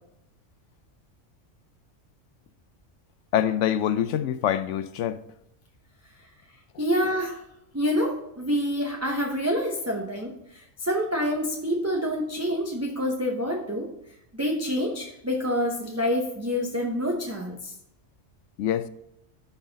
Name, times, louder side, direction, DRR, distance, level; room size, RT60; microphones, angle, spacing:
voice 1, 3.3-5.2 18.6-18.9, left 10 dB, 75° left, 0.9 m, -25 dB
voice 2, 6.8-7.4 7.7-13.9 14.4-17.7, equal, 15° right, 0.8 m, -27 dB
11.5 x 3.9 x 4.0 m
omnidirectional pair, 1.3 m